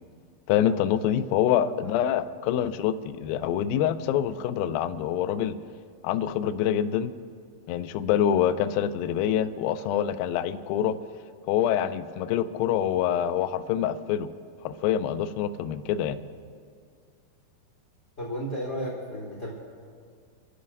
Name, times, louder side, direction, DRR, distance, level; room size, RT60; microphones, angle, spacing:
voice 1, 0.5-5.6 6.0-7.1 7.7-11.0 11.5-14.3 14.6-16.2, left 10 dB, 85° left, 11 dB, 2.1 m, -26 dB
voice 2, 18.2-19.5, equal, 25° left, -5 dB, 1.5 m, -33 dB
29.5 x 13.0 x 2.6 m, 2.1 s
omnidirectional pair, 4.7 m